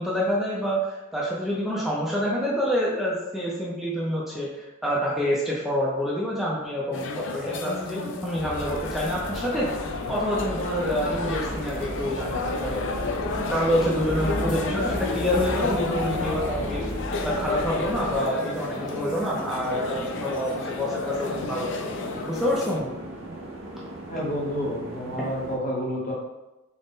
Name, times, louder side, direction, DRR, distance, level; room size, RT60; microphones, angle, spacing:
voice 1, 0.0-9.7 10.1-12.9 13.5-16.8 17.2-21.9 22.3-22.9, equal, ahead, -7 dB, 0.5 m, -27 dB
sound 1, 6.9-22.8, left 4 dB, 60° left, 0.4 m, -32 dB
Traffic noise roadway noise, 8.3-18.2, equal, 85° left, 1.2 m, -35 dB
sound 2, 10.6-25.6, right 1 dB, 60° right, 0.6 m, -39 dB
voice 2, 24.1-26.1, equal, 40° left, -3 dB, 0.9 m, -29 dB
3.9 x 2.1 x 3.5 m, 1.0 s
head